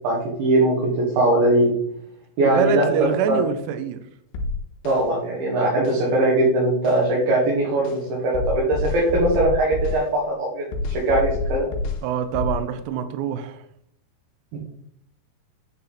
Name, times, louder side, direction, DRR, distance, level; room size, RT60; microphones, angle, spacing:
voice 1, 0.0-1.8 2.4-3.4 4.8-11.7 14.5-14.6, right 1 dB, 65° right, -4 dB, 3.1 m, -21 dB
voice 2, 2.4-4.0 12.0-13.6, right 8 dB, 80° right, 8 dB, 2.6 m, -25 dB
sound 1, 4.4-5.0 5.9-6.0 6.9-7.0 7.9-8.0 8.4-10.0 10.7-12.0 12.4-12.6, left 3 dB, 85° left, 2.9 m, -27 dB
9.6 x 4.1 x 4.1 m, 0.70 s
omnidirectional pair, 5.0 m